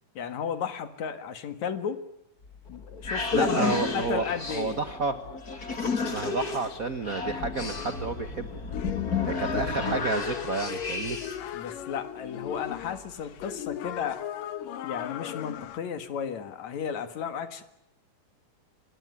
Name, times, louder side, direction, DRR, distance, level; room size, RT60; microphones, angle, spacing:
voice 1, 0.2-2.0 2.7-4.8 11.5-14.2 14.8-17.6, left 7 dB, 60° left, 10 dB, 3.0 m, -34 dB
sound 1, 2.4-11.5, left 4 dB, 30° left, 2.7 m, -32 dB
voice 2, 3.3-5.2 6.0-8.5 9.3-11.2, right 4 dB, 85° right, 10 dB, 0.7 m, -30 dB
sound 2, 8.7-15.8, left 10 dB, 85° left, 3.0 m, -38 dB
25.0 x 22.0 x 9.8 m, 0.79 s
omnidirectional pair, 3.7 m